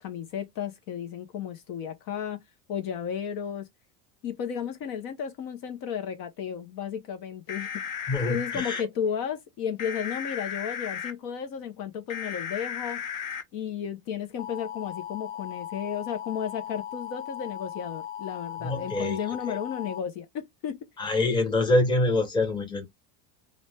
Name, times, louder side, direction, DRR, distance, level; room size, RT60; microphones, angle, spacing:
voice 1, 0.0-2.4 2.7-3.7 4.2-7.7 8.3-13.1 13.5-20.9, left 8 dB, 55° left, 0.7 m, -33 dB
sound 1, 7.5-8.8 9.8-11.1 12.1-13.4 14.4-20.0, left 8 dB, 85° left, 0.9 m, -36 dB
voice 2, 8.1-8.9 18.6-19.2 19.5-19.6 21.0-22.9, left 2 dB, 10° left, 0.8 m, -25 dB
2.5 x 2.1 x 3.1 m
cardioid pair, 145°, 41 cm